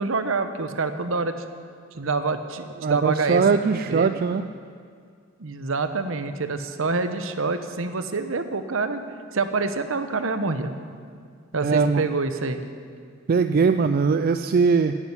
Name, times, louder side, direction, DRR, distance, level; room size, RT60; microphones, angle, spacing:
voice 1, 0.0-1.3 1.9-4.1 5.4-9.0 9.3-10.7 11.5-12.6, right 4 dB, 70° right, 9 dB, 0.9 m, -26 dB
voice 2, 2.8-4.5 11.6-12.1 13.3-15.0, right 5 dB, 45° right, 9 dB, 0.3 m, -21 dB
11.0 x 9.0 x 9.7 m, 2.2 s
head